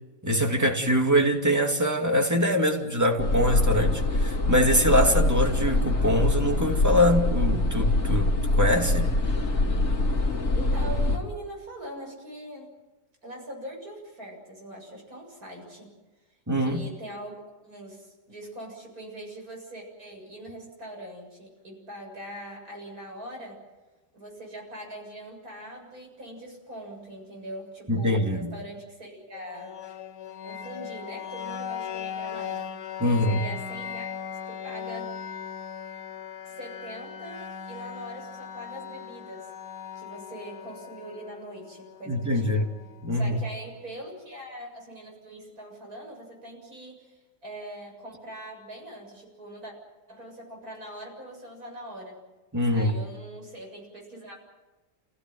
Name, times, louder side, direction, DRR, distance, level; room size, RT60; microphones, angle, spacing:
voice 1, 0.2-8.3 8.6-9.1 16.5-16.8 27.9-28.5 33.0-33.4 42.1-42.7 43.0-43.4 52.5-53.0, equal, 10° right, 2.4 m, -23 dB
sound 1, 3.2-11.2, left 2 dB, 50° left, 2.7 m, -24 dB
voice 2, 10.5-12.7 13.2-15.9 16.6-17.3 17.6-23.6 24.1-29.8 30.4-32.7 33.2-34.1 34.5-35.1 36.4-39.5 39.9-42.7 43.1-49.7 50.1-52.2 52.7-54.4, right 1 dB, 55° right, 8.0 m, -42 dB
sound 2, 29.3-43.3, left 8 dB, 75° left, 1.7 m, -38 dB
29.0 x 16.5 x 9.4 m
omnidirectional pair, 1.8 m